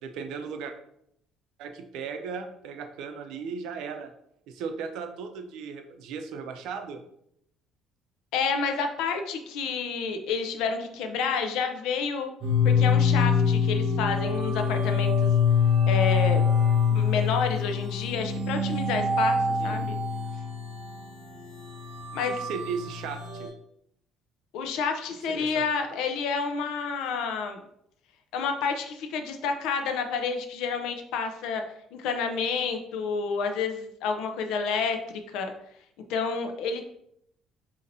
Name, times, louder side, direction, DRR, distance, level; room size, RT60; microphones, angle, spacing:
voice 1, 0.0-0.7 1.6-4.1 4.5-7.0 19.6-19.9 22.3-23.5 25.3-25.6 25.9-26.0, right 5 dB, 80° right, 7 dB, 0.5 m, -36 dB
voice 2, 8.3-12.3 12.6-15.3 15.9-16.5 16.9-20.0 22.1-22.4 24.5-27.6 28.3-31.6 31.9-35.5 36.1-36.8, left 5 dB, 80° left, 5 dB, 0.6 m, -29 dB
sound 1, 12.4-23.5, left 5 dB, 45° right, 1.3 m, -25 dB
5.2 x 2.8 x 2.7 m, 0.73 s
cardioid pair, 115°, 0 cm